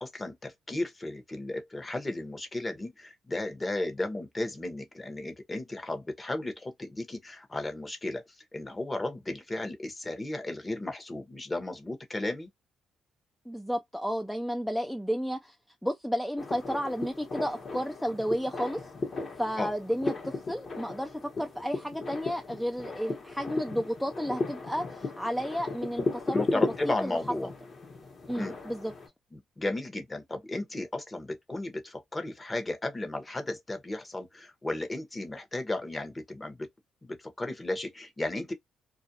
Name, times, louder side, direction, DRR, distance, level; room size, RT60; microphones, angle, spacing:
voice 1, 0.0-8.2 8.5-12.5 19.6-19.7 26.3-27.5 28.4-28.6 29.3-36.7 37.0-38.5, left 2 dB, 20° left, 0.8 m, -34 dB
voice 2, 13.5-15.6 15.8-18.9 19.4-27.5 28.3-28.9, equal, ahead, 0.3 m, -32 dB
sound 1, 16.4-29.1, left 3 dB, 45° left, 1.0 m, -36 dB
2.4 x 2.1 x 2.6 m
cardioid pair, 90°, 0 cm